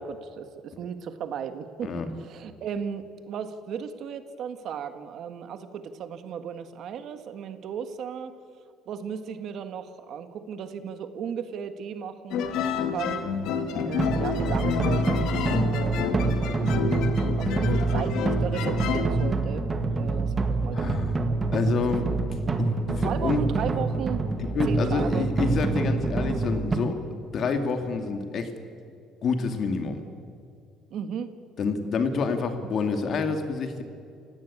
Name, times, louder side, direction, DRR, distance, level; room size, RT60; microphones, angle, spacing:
voice 1, 0.0-8.3 8.9-12.4 12.9-13.2 13.9-16.9 17.3-19.7 19.9-20.3 20.6-21.0 21.7-21.8 23.0-24.2 24.7-25.3 30.9-31.3, right 7 dB, 50° right, 9 dB, 1.7 m, -35 dB
sound 1, 12.3-19.3, left 6 dB, 70° left, 2.3 m, -29 dB
sound 2, 14.0-26.8, right 3 dB, 20° right, 2.1 m, -26 dB
voice 2, 20.7-21.2 21.5-22.1 22.6-23.4 24.4-28.5 29.2-30.0 31.6-33.8, left 4 dB, 40° left, 7 dB, 2.6 m, -28 dB
28.5 x 17.0 x 8.8 m, 2.4 s
cardioid pair, 150°, 0 cm